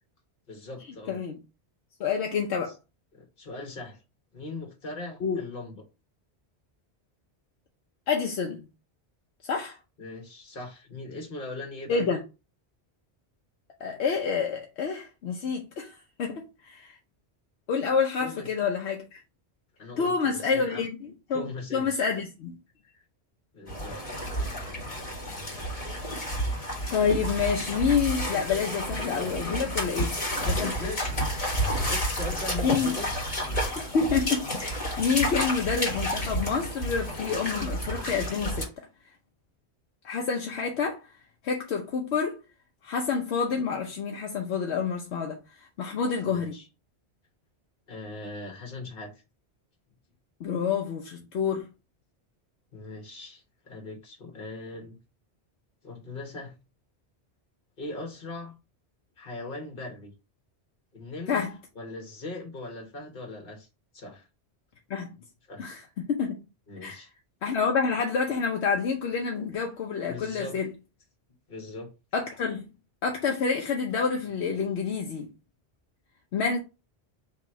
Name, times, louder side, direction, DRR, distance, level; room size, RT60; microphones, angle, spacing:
voice 1, 0.5-1.2 3.1-4.0 4.3-5.8 10.0-12.1 18.2-18.5 19.8-20.8 21.3-22.0 23.5-24.0 30.7-31.4 31.7-33.1 46.2-46.7 47.9-49.1 52.7-55.0 55.8-56.5 57.8-58.5 59.2-60.1 60.9-61.4 61.7-63.7 63.9-64.3 65.5-65.7 66.7-67.1 70.1-70.6 71.5-71.9, left 2 dB, 55° left, 1.4 m, -40 dB
voice 2, 2.0-2.7 5.2-5.4 8.1-8.6 9.5-9.8 11.9-12.2 13.8-17.0 17.7-19.2 20.0-21.4 21.7-22.6 26.9-30.2 30.4-30.8 32.6-33.0 33.9-38.7 40.0-41.0 41.4-42.4 42.8-46.6 50.4-51.7 61.3-61.5 64.9-65.1 65.6-66.4 66.8-67.0 67.4-70.7 72.1-72.6 73.0-75.3 76.3-76.6, left 5 dB, 75° left, 1.0 m, -28 dB
sound 1, 23.7-38.6, equal, 35° left, 1.9 m, -30 dB
3.4 x 3.0 x 4.5 m
omnidirectional pair, 1.1 m